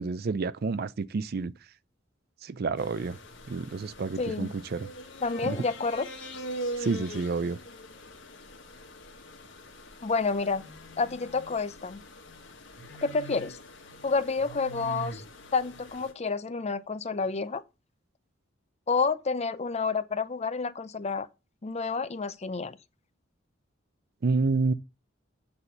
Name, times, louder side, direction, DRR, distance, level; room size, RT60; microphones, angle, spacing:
voice 1, 0.0-1.5 2.4-3.2 3.5-4.9 5.5-5.6 6.8-7.6 24.2-24.7, right 4 dB, 50° right, 0.4 m, -29 dB
sound 1, 2.8-16.1, right 1 dB, 70° left, 1.7 m, -42 dB
voice 2, 4.2-4.5 5.2-6.1 10.0-10.7 11.0-12.0 13.0-13.6 14.0-15.2 15.5-17.6 18.9-21.3 21.6-22.8, left 4 dB, 35° left, 0.5 m, -29 dB
7.9 x 4.2 x 6.7 m
head